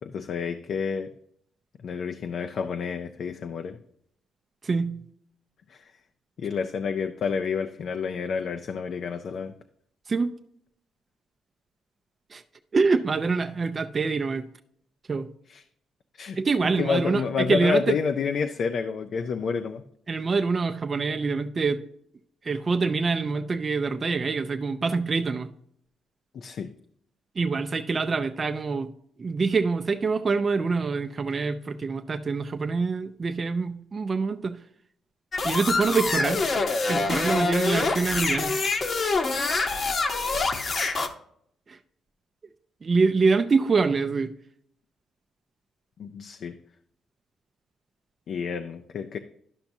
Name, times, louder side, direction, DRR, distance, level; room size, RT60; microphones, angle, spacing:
voice 1, 0.0-1.1 1.8-3.8 5.7-5.9 6.4-9.5 15.5-15.6 16.1-16.4 16.8-19.8 26.3-26.7 46.0-46.6 48.3-49.2, left 6 dB, 60° left, 7 dB, 0.4 m, -29 dB
voice 2, 4.6-5.0 10.1-10.4 12.3-12.4 12.7-14.5 15.1-15.3 16.3-17.9 20.1-21.8 22.4-25.5 27.4-28.9 29.2-34.6 35.4-36.4 36.9-38.5 41.7-41.8 42.8-44.3, right 4 dB, 35° right, 7 dB, 0.4 m, -25 dB
sound 1, 35.3-41.1, left 3 dB, 45° left, 0.8 m, -26 dB
11.5 x 5.8 x 2.7 m, 0.68 s
cardioid pair, 90°, 0 cm